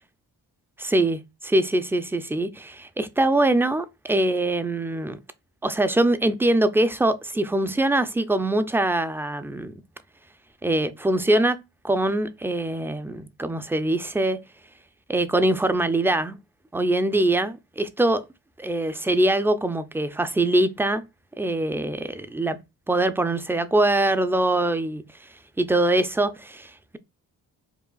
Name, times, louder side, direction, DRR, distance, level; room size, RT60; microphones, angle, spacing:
voice 1, 0.8-5.2 5.6-9.7 10.6-11.6 11.8-14.4 15.1-16.4 16.7-18.3 18.6-21.0 21.4-22.6 22.9-25.3 25.6-27.0, right 1 dB, 5° right, 0.3 m, -23 dB
4.8 x 2.4 x 2.3 m
supercardioid pair, 50°, 42 cm